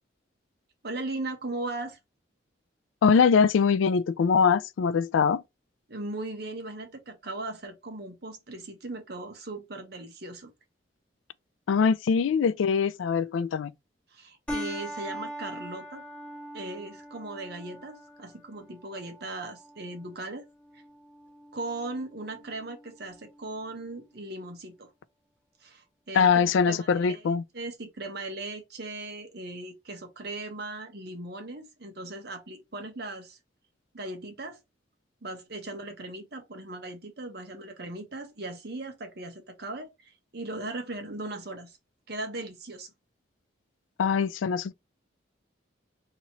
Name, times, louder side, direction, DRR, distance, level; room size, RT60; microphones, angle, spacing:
voice 1, 0.8-2.0 5.9-10.5 14.1-16.0 16.5-20.4 21.5-24.9 25.6-33.4 33.9-34.6 35.2-41.8 42.1-42.9, right 2 dB, 55° right, 0.9 m, -38 dB
voice 2, 3.0-5.4 11.7-13.7 26.1-27.4 44.0-44.7, left 6 dB, 80° left, 0.3 m, -22 dB
sound 1, 14.5-23.5, equal, 5° left, 0.6 m, -42 dB
2.9 x 2.8 x 4.1 m
head